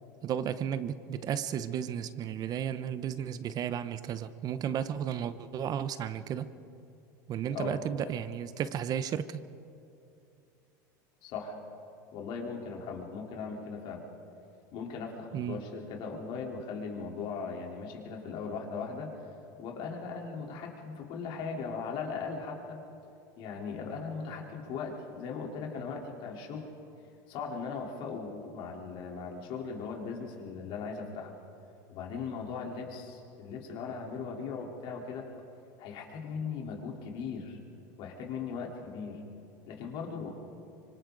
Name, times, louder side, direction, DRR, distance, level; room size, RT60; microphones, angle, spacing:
voice 1, 0.2-6.5 7.3-9.4 15.3-15.6, right 9 dB, 40° right, 13 dB, 0.9 m, -33 dB
voice 2, 11.2-11.6 12.1-14.0 14.7-19.1 19.6-22.8 23.4-26.7 27.3-31.3 31.9-35.3 35.8-37.6 38.0-39.2 39.7-40.3, left 5 dB, 55° left, 0 dB, 3.8 m, -38 dB
25.5 x 25.5 x 4.0 m, 2.7 s
supercardioid pair, 115°, 10 cm